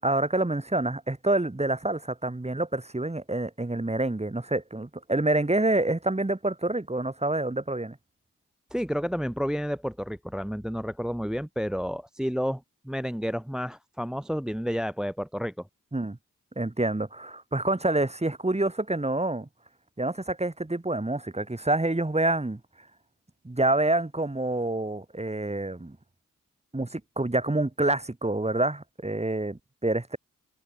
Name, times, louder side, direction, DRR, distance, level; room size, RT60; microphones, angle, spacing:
voice 1, 0.0-8.0 15.9-16.2 16.6-19.5 20.0-22.6 23.4-26.0 26.7-30.2, right 2 dB, 20° right, 3.6 m, -27 dB
voice 2, 8.7-15.5, equal, ahead, 1.0 m, -30 dB
supercardioid pair, 45°, 33 cm